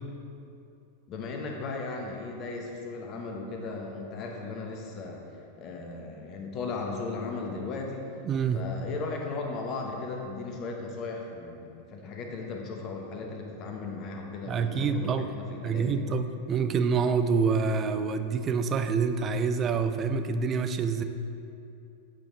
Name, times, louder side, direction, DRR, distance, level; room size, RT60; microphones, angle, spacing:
voice 1, 1.1-5.2 5.6-8.1 8.5-16.0, left 3 dB, 35° left, 2 dB, 1.0 m, -36 dB
voice 2, 8.3-8.7 14.5-15.3 15.6-21.0, right 5 dB, 25° right, 9 dB, 0.4 m, -27 dB
8.8 x 5.0 x 3.7 m, 2.6 s
figure-of-eight pair, 90°, 0 cm